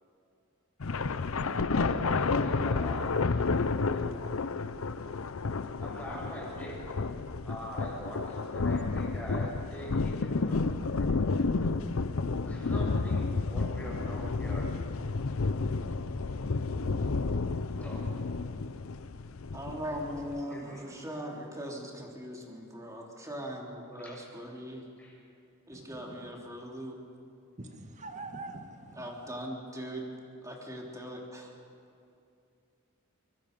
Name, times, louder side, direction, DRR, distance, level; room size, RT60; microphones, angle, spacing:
sound 1, 0.8-20.4, left 3 dB, 80° left, 0.7 m, -31 dB
voice 1, 1.7-3.3 3.5-4.3 5.8-6.8 7.4-10.6 11.0-11.1 12.4-14.7 17.7-18.1 20.4-20.9 24.0-24.2 25.0-25.1, equal, 5° left, -4 dB, 6.8 m, -43 dB
voice 2, 19.5-24.8 25.7-26.9 28.9-30.0 30.4-31.5, equal, 15° right, -1 dB, 3.2 m, -40 dB
voice 3, 27.6-29.0, right 2 dB, 35° right, 5 dB, 1.7 m, -43 dB
23.5 x 23.0 x 5.3 m, 2.5 s
head